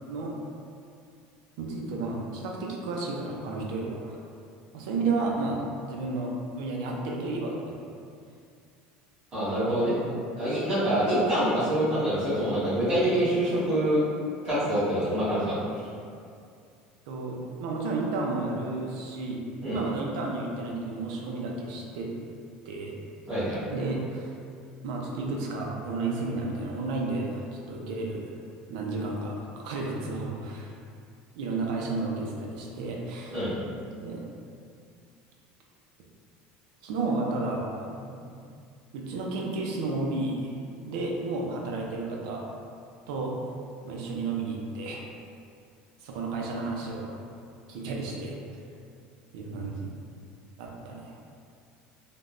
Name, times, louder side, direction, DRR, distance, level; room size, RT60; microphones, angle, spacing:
voice 1, 1.6-4.2 4.7-5.6 5.9-7.8 17.1-22.1 22.7-22.9 23.7-24.4 24.8-28.3 28.7-30.7 31.4-33.4 34.0-34.2 36.8-38.3 38.9-40.5 40.8-42.5 43.1-43.6 43.8-45.0 46.0-47.2 47.7-48.4 49.3-49.9 50.6-51.1, right 3 dB, 75° right, -1 dB, 0.4 m, -32 dB
voice 2, 9.3-9.9 10.4-14.0 14.4-15.9 19.6-19.8 23.3-23.6 33.3-33.5, right 1 dB, 30° right, -13 dB, 1.1 m, -26 dB
3.3 x 2.1 x 2.4 m, 2.3 s
cardioid pair, 175°, 4 cm